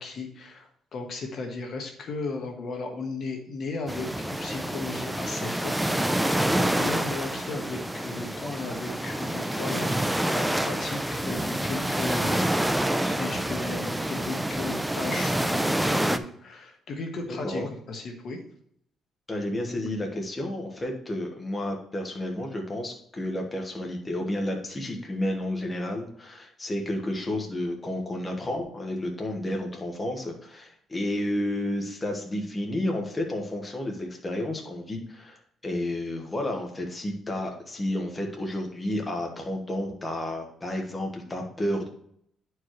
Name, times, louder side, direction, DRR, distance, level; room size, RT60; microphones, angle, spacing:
voice 1, 0.0-5.8 6.6-17.6 17.9-18.4, left 3 dB, 50° left, 3 dB, 1.2 m, -36 dB
sound 1, 3.9-16.2, right 1 dB, 5° right, 0.4 m, -27 dB
voice 2, 19.3-41.9, left 1 dB, 20° left, 1 dB, 1.2 m, -31 dB
10.5 x 4.7 x 3.1 m, 0.68 s
cardioid pair, 140°, 0 cm